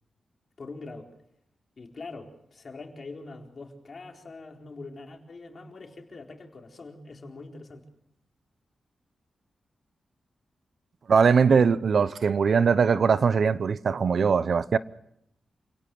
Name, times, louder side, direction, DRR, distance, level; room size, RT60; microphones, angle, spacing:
voice 1, 0.6-1.1 1.8-7.9, left 3 dB, 50° left, 4.3 m, -43 dB
voice 2, 11.1-14.8, right 6 dB, 65° right, 0.8 m, -21 dB
28.5 x 17.5 x 7.7 m
cardioid pair, 85°, 0 cm